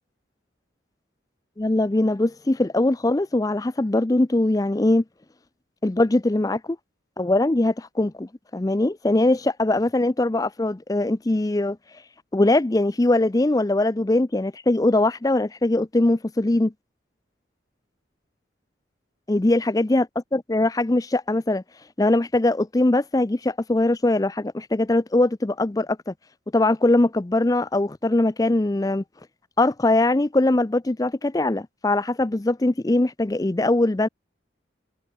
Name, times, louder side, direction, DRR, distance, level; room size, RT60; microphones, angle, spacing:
voice 1, 1.6-5.0 5.8-6.8 7.2-11.8 12.3-16.7 19.3-20.0 20.3-21.6 22.0-26.1 26.5-29.0 29.6-34.1, left 2 dB, 20° left, 0.5 m, -21 dB
head